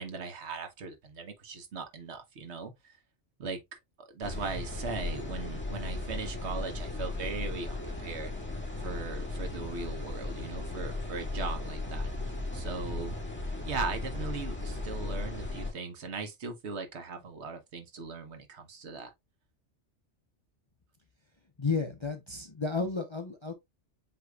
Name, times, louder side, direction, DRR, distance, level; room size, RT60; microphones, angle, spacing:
voice 1, 0.0-3.0 3.4-3.6 4.0-8.3 8.8-12.1 12.5-13.2 13.6-19.1, right 4 dB, 70° right, 1.2 m, -39 dB
sound 1, 4.2-15.7, left 2 dB, 10° left, 1.7 m, -36 dB
voice 2, 21.6-23.5, left 4 dB, 30° left, 0.6 m, -32 dB
7.9 x 2.9 x 2.3 m
omnidirectional pair, 1.2 m